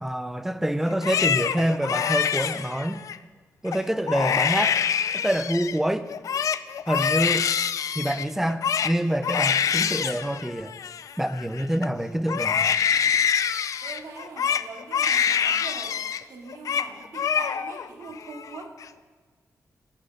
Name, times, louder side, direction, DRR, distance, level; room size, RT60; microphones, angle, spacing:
voice 1, 0.0-3.0 3.6-4.8 5.1-6.1 6.9-7.5 7.9-10.7 11.2-12.7, right 1 dB, 5° right, 11 dB, 0.6 m, -26 dB
Crying sobbing, 0.9-3.2 3.7-3.8 4.1-5.8 6.1-11.9 12.3-16.2 16.5-16.9 17.1-17.9 18.2-18.8, left 7 dB, 65° left, 0.5 m, -25 dB
voice 2, 13.8-16.0 16.3-18.7, right 3 dB, 70° right, 0 dB, 2.7 m, -41 dB
15.5 x 11.0 x 6.8 m, 1.4 s
wide cardioid pair, 180°, 6 cm